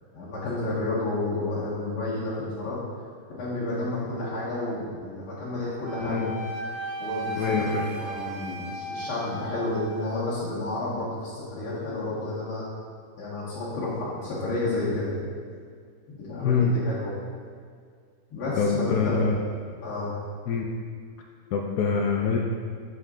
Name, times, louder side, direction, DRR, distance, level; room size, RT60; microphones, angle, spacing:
voice 1, 0.1-2.8 3.4-6.3 7.0-12.6 13.2-15.1 16.2-17.1 18.3-19.3 19.8-20.1, left 2 dB, 90° left, -10 dB, 2.5 m, -31 dB
Wind instrument woodwind instrument, 5.8-10.1, right 1 dB, 60° right, 1.3 m, -35 dB
voice 2, 6.0-6.3 7.3-7.9 16.4-16.8 18.6-19.4 20.5-20.6 21.5-22.4, left 5 dB, 70° left, 0 dB, 0.9 m, -25 dB
7.0 x 6.5 x 3.7 m, 2.1 s
omnidirectional pair, 2.3 m